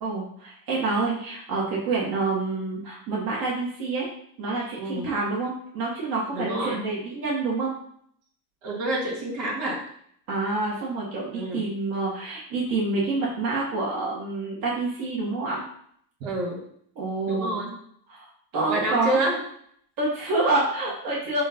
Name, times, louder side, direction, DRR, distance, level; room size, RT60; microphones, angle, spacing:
voice 1, 0.0-4.1 4.4-7.7 10.3-15.6 17.0-17.6 18.1-18.3 18.5-19.2 20.0-21.4, right 3 dB, 60° right, -5 dB, 2.0 m, -27 dB
voice 2, 6.3-6.8 8.6-9.8 11.3-11.7 16.2-16.6 17.3-17.7 18.7-19.4, right 1 dB, 80° right, -3 dB, 2.5 m, -28 dB
7.4 x 2.7 x 5.3 m, 0.65 s
cardioid pair, 130°, 40 cm